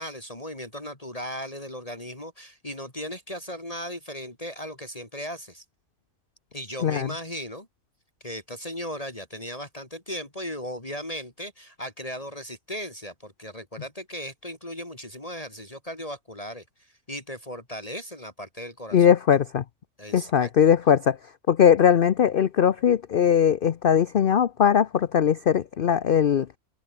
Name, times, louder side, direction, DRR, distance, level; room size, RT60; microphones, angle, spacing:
voice 1, 0.0-5.6 6.5-7.7 8.2-19.1 20.0-20.5, equal, 25° left, 3.5 m, -37 dB
voice 2, 18.9-19.6 20.1-21.2 21.5-26.5, left 8 dB, 55° left, 0.6 m, -20 dB
omnidirectional pair, 1.6 m